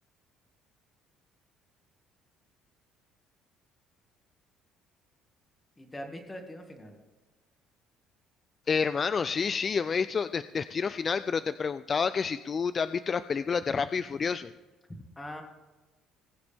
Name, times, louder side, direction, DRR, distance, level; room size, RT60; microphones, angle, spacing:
voice 1, 5.8-7.0 15.2-15.4, equal, 15° left, 4 dB, 2.0 m, -42 dB
voice 2, 8.7-14.5, left 5 dB, 30° left, 13 dB, 0.3 m, -29 dB
20.5 x 8.1 x 3.5 m, 1.2 s
cardioid pair, 135°, 0 cm